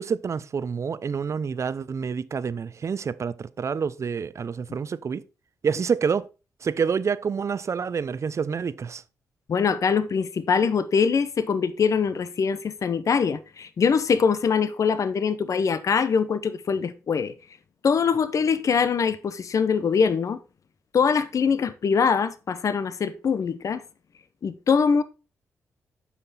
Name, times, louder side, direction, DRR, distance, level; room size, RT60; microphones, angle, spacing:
voice 1, 0.0-5.2 5.6-6.3 6.6-9.0, right 6 dB, 50° right, 0.6 m, -28 dB
voice 2, 9.5-17.3 17.8-20.4 20.9-23.8 24.4-25.0, left 6 dB, 60° left, 0.8 m, -23 dB
8.0 x 5.9 x 4.1 m
supercardioid pair, 55°, 6 cm